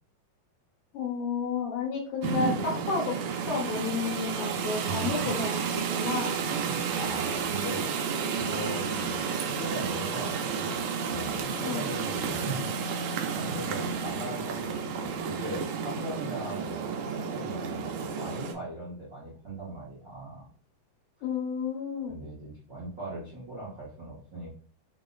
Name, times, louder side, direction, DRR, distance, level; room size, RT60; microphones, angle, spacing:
voice 1, 0.9-3.1 3.5-6.4 11.6-11.8 21.2-22.1, left 5 dB, 70° left, -1 dB, 2.7 m, -31 dB
sound 1, 2.2-18.5, right 6 dB, 85° right, 2.4 m, -31 dB
voice 2, 4.8-5.3 6.5-10.8 11.1-12.9 13.4-20.5 22.1-24.6, right 2 dB, 65° right, -5 dB, 0.8 m, -39 dB
5.9 x 2.1 x 3.8 m, 0.43 s
omnidirectional pair, 3.9 m